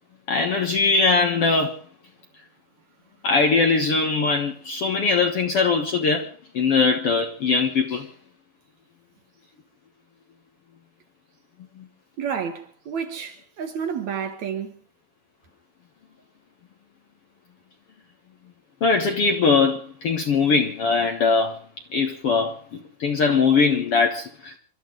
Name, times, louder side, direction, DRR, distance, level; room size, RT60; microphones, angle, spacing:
voice 1, 0.3-1.8 3.2-6.3 6.5-8.1 11.8-11.9 18.8-21.6 21.9-24.5, left 4 dB, 55° left, 1.8 m, -21 dB
voice 2, 12.2-14.8, right 7 dB, 60° right, 2.5 m, -30 dB
27.5 x 13.0 x 3.9 m
omnidirectional pair, 4.1 m